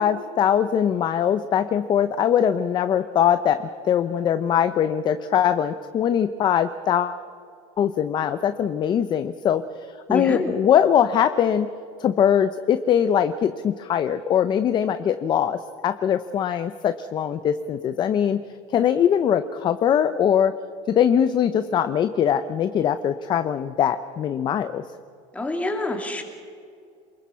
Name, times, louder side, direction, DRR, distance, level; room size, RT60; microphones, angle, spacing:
voice 1, 0.0-7.2 7.8-11.7 12.0-18.4 18.7-20.5 20.9-24.8, left 9 dB, 30° left, 11 dB, 0.7 m, -22 dB
voice 2, 10.1-10.5 25.3-26.2, left 2 dB, 10° left, 3 dB, 2.7 m, -26 dB
28.0 x 21.0 x 5.7 m, 2.4 s
cardioid pair, 150°, 16 cm